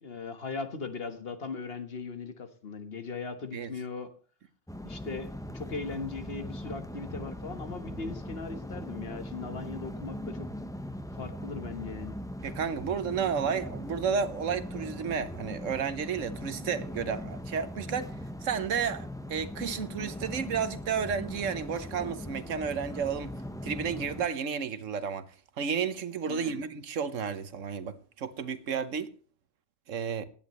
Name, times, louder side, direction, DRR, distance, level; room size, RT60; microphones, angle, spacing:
voice 1, 0.0-4.1 4.8-10.5 11.1-12.1 26.3-26.6, left 4 dB, 50° left, 1.5 m, -39 dB
sound 1, 4.7-24.3, equal, 5° left, 0.5 m, -40 dB
voice 2, 12.4-18.1 18.4-23.3 23.6-25.3 25.6-29.1 29.9-30.2, right 6 dB, 80° right, 1.4 m, -32 dB
16.5 x 10.5 x 3.1 m
omnidirectional pair, 1.3 m